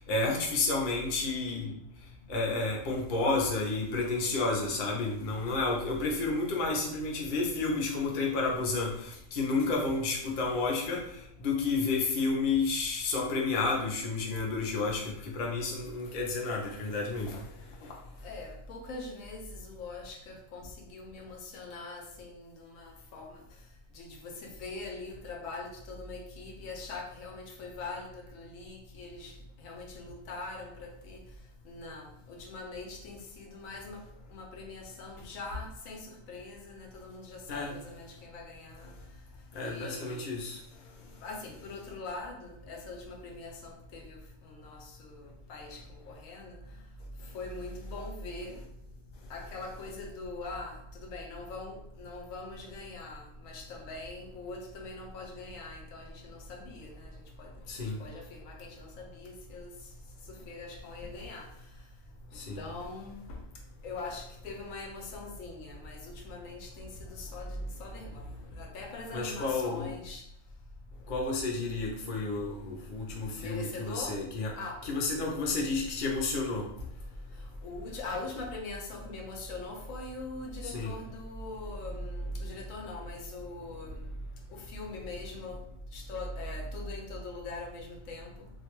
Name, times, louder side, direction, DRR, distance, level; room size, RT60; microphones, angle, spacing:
voice 1, 0.0-1.8 2.3-17.4 17.8-18.0 37.5-37.8 39.5-40.6 57.7-58.0 62.3-62.6 69.1-69.9 71.1-74.5 74.8-76.7 80.6-80.9, left 3 dB, 50° left, -2 dB, 0.6 m, -31 dB
voice 2, 18.2-31.3 31.6-40.3 41.0-46.6 47.2-48.6 49.3-59.9 60.2-61.9 62.3-63.4 63.8-70.3 73.3-74.2 74.5-74.9 77.3-84.2 84.5-85.6 85.9-88.5, left 3 dB, 80° left, 1 dB, 1.0 m, -43 dB
2.5 x 2.2 x 2.9 m, 0.72 s
omnidirectional pair, 1.4 m